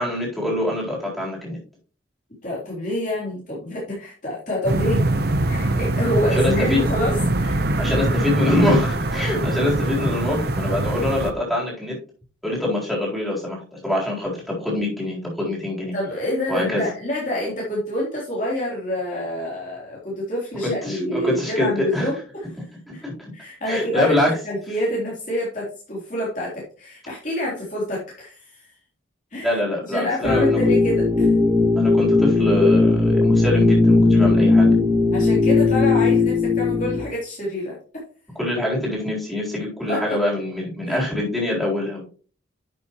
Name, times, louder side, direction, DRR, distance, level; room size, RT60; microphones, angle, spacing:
voice 1, 0.0-1.6 6.3-6.8 7.8-12.0 12.4-16.0 16.5-16.9 20.6-22.1 22.9-23.1 23.7-24.3 29.4-30.6 31.8-34.7 38.4-42.0, left 1 dB, ahead, -5 dB, 4.1 m, -24 dB
voice 2, 2.4-5.0 5.5-8.0 15.9-22.2 22.9-23.0 23.3-28.7 29.3-29.6 29.9-31.3 35.1-37.8 39.9-40.2 40.9-41.0, left 1 dB, 40° left, -5 dB, 3.5 m, -27 dB
sound 1, 4.7-11.3, right 2 dB, 50° right, 0.9 m, -23 dB
sound 2, 30.2-37.0, left 3 dB, 15° right, 2.2 m, -17 dB
11.5 x 6.8 x 3.1 m, 0.38 s
head